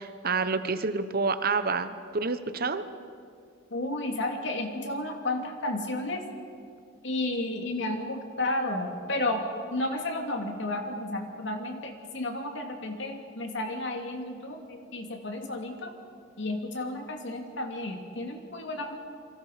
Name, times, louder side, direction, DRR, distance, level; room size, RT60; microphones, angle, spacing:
voice 1, 0.0-2.8, right 4 dB, 50° right, 11 dB, 1.0 m, -28 dB
voice 2, 3.7-6.2 7.0-9.4 9.7-15.9 16.4-19.0, left 2 dB, 65° left, 3 dB, 2.6 m, -32 dB
29.0 x 23.0 x 5.0 m, 2.3 s
head